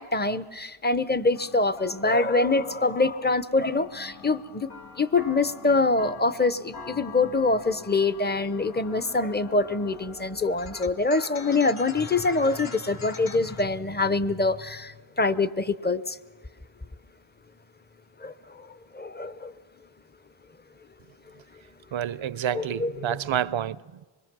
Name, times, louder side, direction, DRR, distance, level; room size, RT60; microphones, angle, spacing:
voice 1, 0.0-4.7 5.0-16.2 18.2-18.3 18.9-19.5 22.5-23.2, left 3 dB, 20° left, 0.7 m, -25 dB
sound 1, 1.3-13.7, left 4 dB, 85° left, 1.7 m, -44 dB
voice 2, 21.9-24.1, right 10 dB, 70° right, 0.6 m, -29 dB
25.5 x 21.5 x 6.1 m
wide cardioid pair, 80°, 49 cm